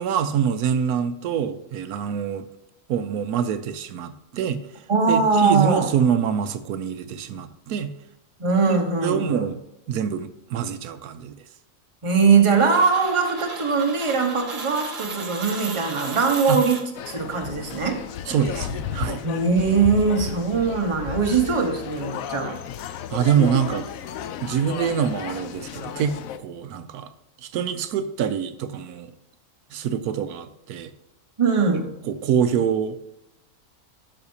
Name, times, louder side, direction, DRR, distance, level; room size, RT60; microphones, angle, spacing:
voice 1, 0.0-2.5 2.9-4.6 5.1-7.9 8.7-9.6 9.9-11.4 16.5-16.6 18.3-19.2 23.1-23.9 24.4-26.2 26.4-27.1 27.4-29.1 29.7-30.9 32.0-33.1, right 8 dB, 90° right, 10 dB, 1.1 m, -25 dB
voice 2, 4.9-5.9 8.4-9.5 12.0-18.0 19.2-22.6 31.4-31.9, right 5 dB, 25° right, 2 dB, 1.0 m, -21 dB
sound 1, 12.5-17.3, right 4 dB, 45° right, 1.2 m, -35 dB
sound 2, 16.9-26.4, left 9 dB, 70° left, 0.9 m, -33 dB
12.0 x 5.6 x 2.8 m, 0.84 s
omnidirectional pair, 1.6 m